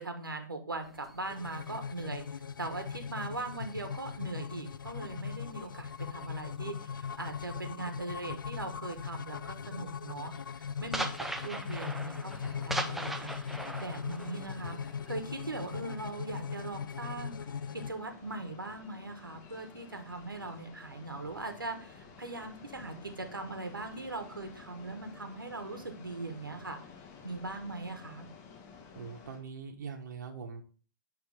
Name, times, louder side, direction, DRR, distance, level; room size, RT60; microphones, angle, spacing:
voice 1, 0.0-11.1 11.4-26.8 27.2-28.3, right 2 dB, 90° right, 6 dB, 1.2 m, -40 dB
sound 1, 0.8-4.7 5.0-8.5 8.7-9.1 9.4-15.8, right 1 dB, ahead, 0.4 m, -41 dB
sound 2, 1.2-17.9, left 7 dB, 75° left, 0.4 m, -40 dB
sound 3, 12.2-29.4, left 6 dB, 25° left, 2.0 m, -53 dB
voice 2, 28.9-30.6, right 5 dB, 60° right, 3 dB, 1.1 m, -42 dB
9.8 x 3.3 x 3.4 m, 0.41 s
figure-of-eight pair, 125°, 11 cm